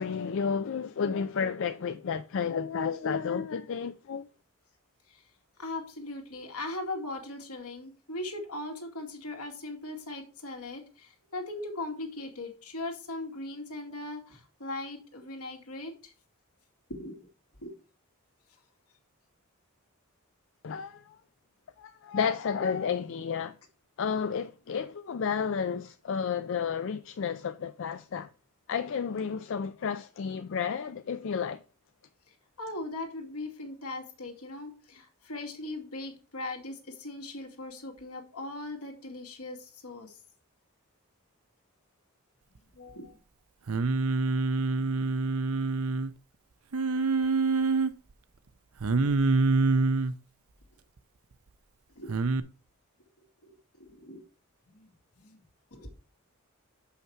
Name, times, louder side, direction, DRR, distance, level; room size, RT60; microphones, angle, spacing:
voice 1, 0.0-4.3 20.6-21.2 21.8-23.5 24.0-28.3 28.7-31.6, left 6 dB, 60° left, 0.4 m, -31 dB
voice 2, 5.6-16.1 16.9-17.2 17.6-17.8 32.3-40.2 42.7-43.2 48.9-49.1 52.0-52.1 53.8-54.2 54.7-54.9 55.2-55.4 55.7-55.9, left 2 dB, 80° left, 2.0 m, -39 dB
Singing, 43.7-46.1 46.7-47.9 48.8-50.1 52.1-52.4, right 3 dB, 70° right, 0.6 m, -26 dB
6.8 x 5.7 x 4.5 m
head